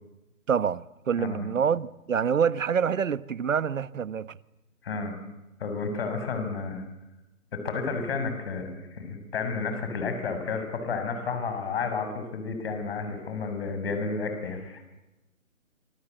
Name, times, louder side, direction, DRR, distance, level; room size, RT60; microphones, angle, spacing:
voice 1, 0.5-4.4, right 7 dB, 65° right, 1.2 m, -26 dB
voice 2, 4.8-5.1 5.6-6.8 7.5-14.9, left 4 dB, 45° left, 6.7 m, -31 dB
27.5 x 25.0 x 8.2 m
hypercardioid pair, 160°, 42 cm